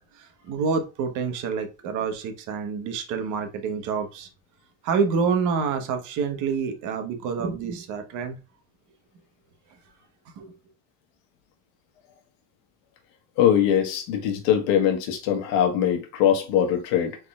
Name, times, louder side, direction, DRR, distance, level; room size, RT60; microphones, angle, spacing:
voice 1, 0.2-4.3 4.8-8.4 10.4-10.5, right 5 dB, 55° right, 1.2 m, -27 dB
voice 2, 13.4-17.2, left 9 dB, 75° left, 1.2 m, -22 dB
4.7 x 3.9 x 2.3 m
cardioid pair, 145°, 36 cm